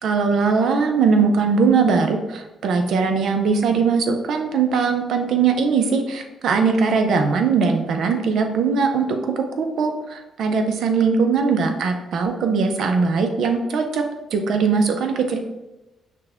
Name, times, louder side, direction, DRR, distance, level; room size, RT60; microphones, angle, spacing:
voice 1, 0.0-14.0 14.3-15.4, right 5 dB, 70° right, 5 dB, 0.6 m, -20 dB
5.9 x 2.3 x 3.4 m, 0.99 s
cardioid pair, 90°, 0 cm